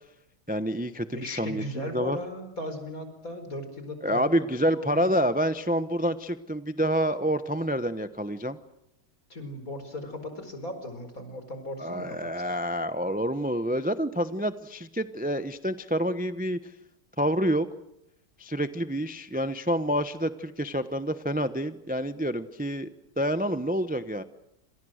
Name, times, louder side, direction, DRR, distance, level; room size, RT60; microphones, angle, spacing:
voice 1, 0.5-2.2 4.0-8.6 11.8-16.7 17.2-17.7 18.4-22.9 23.2-24.2, equal, 10° right, 10 dB, 0.5 m, -28 dB
voice 2, 1.1-5.2 9.3-12.6, left 1 dB, 50° left, 8 dB, 5.2 m, -37 dB
28.5 x 26.5 x 6.5 m, 0.81 s
omnidirectional pair, 2.0 m